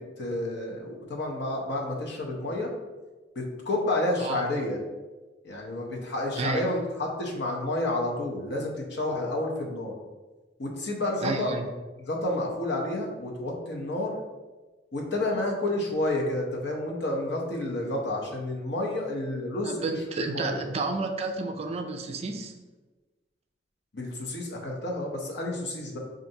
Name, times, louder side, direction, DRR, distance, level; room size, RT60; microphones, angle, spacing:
voice 1, 0.0-2.7 3.4-4.8 5.4-10.0 10.6-11.5 12.0-14.1 14.9-19.8 20.2-20.6 23.9-26.0, left 1 dB, 65° left, 0 dB, 0.8 m, -30 dB
voice 2, 11.2-11.7 19.6-22.5, right 3 dB, 35° right, 5 dB, 0.3 m, -31 dB
5.3 x 2.5 x 2.7 m, 1.2 s
head